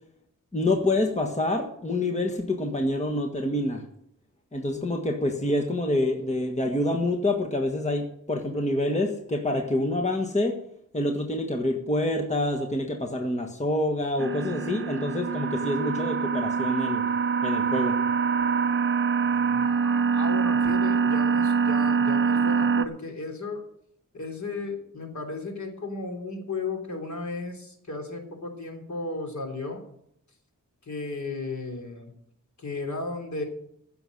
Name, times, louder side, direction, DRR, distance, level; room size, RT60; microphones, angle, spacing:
voice 1, 0.5-3.8 4.5-10.6 10.9-17.0 17.4-18.0, left 1 dB, 20° left, 3 dB, 1.5 m, -27 dB
sound 1, 14.2-22.9, right 5 dB, 40° right, 0.7 m, -24 dB
voice 2, 19.2-23.6 24.1-29.8 30.8-32.1 32.6-33.4, left 3 dB, 60° left, 3 dB, 3.5 m, -35 dB
15.5 x 6.9 x 6.6 m, 0.72 s
wide cardioid pair, 110°, 32 cm